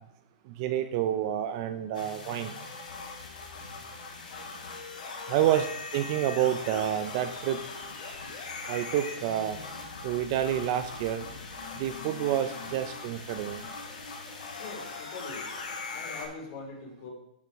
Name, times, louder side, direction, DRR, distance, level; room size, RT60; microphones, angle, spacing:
voice 1, 0.5-2.5 5.3-5.7 5.9-7.6 8.7-9.6 10.0-11.3 11.7-13.6, right 11 dB, 30° right, 9 dB, 0.4 m, -28 dB
sound 1, 1.9-16.3, left 4 dB, 60° left, 4.1 m, -40 dB
voice 2, 14.6-15.5 15.9-17.1, left 3 dB, 35° left, -1 dB, 3.2 m, -42 dB
11.5 x 5.3 x 4.6 m, 0.84 s
hypercardioid pair, 170°, 5 cm